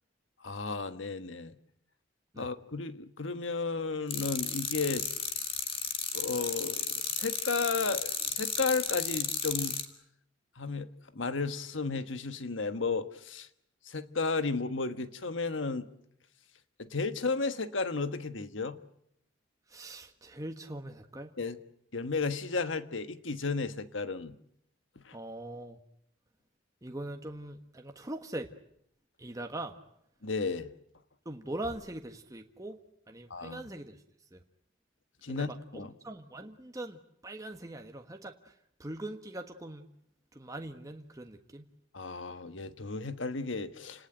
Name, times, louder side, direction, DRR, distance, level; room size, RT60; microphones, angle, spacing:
voice 1, 0.4-1.5 2.4-5.1 6.1-9.8 10.6-10.9 11.1-13.5 13.9-15.9 16.8-18.8 21.4-21.6 21.9-24.4 25.0-25.1 30.2-30.7 33.3-33.6 35.2-35.9 41.9-44.1, left 4 dB, 85° left, 1.4 m, -33 dB
sound 1, 4.1-9.8, left 6 dB, 30° left, 2.2 m, -34 dB
voice 2, 19.7-21.3 25.1-25.8 26.8-28.5 29.2-29.8 31.2-32.8 33.1-34.0 34.3-34.4 35.3-38.5 38.8-39.9 40.3-41.7, right 1 dB, 20° right, 1.4 m, -41 dB
29.5 x 18.5 x 8.9 m
head